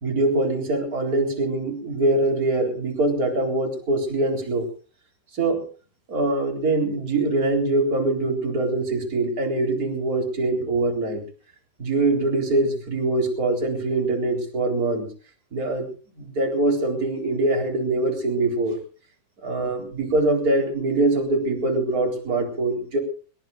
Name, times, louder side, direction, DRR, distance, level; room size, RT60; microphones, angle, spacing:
voice 1, 0.0-4.7 5.4-5.6 6.1-11.2 11.8-15.1 15.5-15.9 16.2-18.8 19.4-23.0, right 2 dB, 20° right, 4 dB, 3.6 m, -23 dB
22.0 x 21.5 x 2.5 m, 0.38 s
omnidirectional pair, 5.7 m